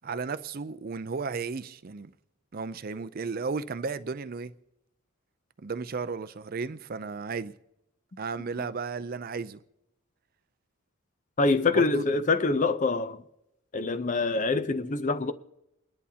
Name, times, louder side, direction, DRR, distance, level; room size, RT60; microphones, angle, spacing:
voice 1, 0.0-2.1 2.5-4.5 5.6-7.5 8.2-9.6 11.7-12.0, right 4 dB, 45° right, 0.4 m, -34 dB
voice 2, 11.4-13.2 13.7-15.3, left 3 dB, 35° left, 0.6 m, -25 dB
29.5 x 10.5 x 2.8 m
head